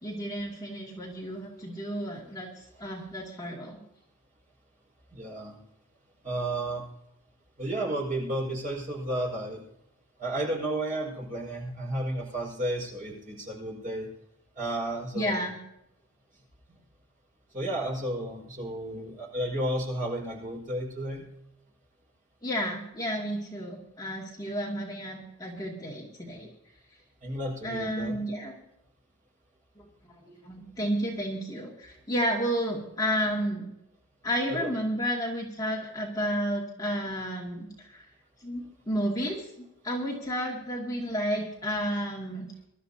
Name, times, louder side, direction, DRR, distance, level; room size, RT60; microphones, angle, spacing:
voice 1, 0.0-2.5 2.8-3.8 15.1-15.5 22.4-26.5 27.6-28.5 29.8-29.9 30.2-33.7 34.2-38.0 38.4-42.5, equal, 15° left, -3 dB, 2.4 m, -31 dB
voice 2, 5.1-5.6 6.2-6.8 7.6-9.6 10.2-14.1 14.6-15.4 17.5-21.2 27.2-28.2 34.5-34.7, right 1 dB, 40° right, -2 dB, 5.2 m, -32 dB
23.5 x 13.0 x 2.8 m, 0.80 s
head